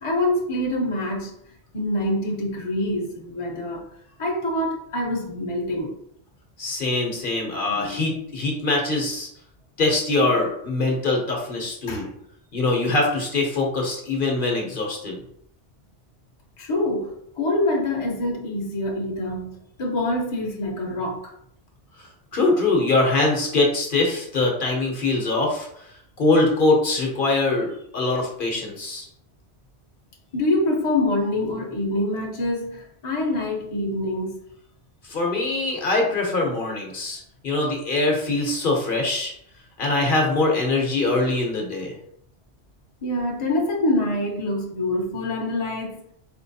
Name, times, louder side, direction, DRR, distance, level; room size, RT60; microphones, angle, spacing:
voice 1, 0.0-1.3 1.7-3.8 4.2-6.0 7.7-8.4 11.9-12.1 16.6-21.3 30.3-34.4 43.0-46.0, left 1 dB, 35° left, -1 dB, 0.7 m, -25 dB
voice 2, 6.6-9.3 9.8-12.1 12.5-15.2 22.0-29.1 35.0-39.3 39.8-41.9, left 2 dB, 55° left, 0 dB, 1.0 m, -23 dB
4.5 x 2.9 x 2.7 m, 0.70 s
omnidirectional pair, 1.1 m